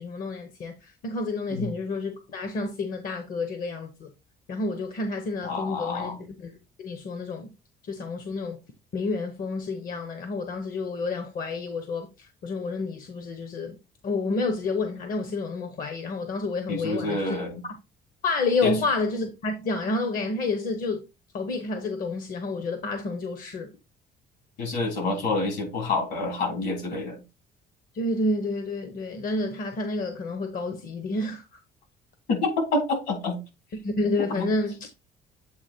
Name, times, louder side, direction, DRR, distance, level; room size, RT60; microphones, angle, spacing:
voice 1, 0.0-4.1 4.5-6.5 6.8-7.5 7.8-8.6 8.9-13.7 14.0-17.4 18.2-21.0 21.3-23.7 27.9-31.4 33.8-34.9, left 3 dB, 55° left, 0.9 m, -29 dB
voice 2, 5.4-6.2 16.7-17.6 18.6-18.7 24.6-27.2 32.3-32.8 33.1-33.4 34.2-34.5, left 3 dB, 80° left, 3.4 m, -28 dB
8.0 x 2.9 x 4.3 m
cardioid pair, 110°, 17 cm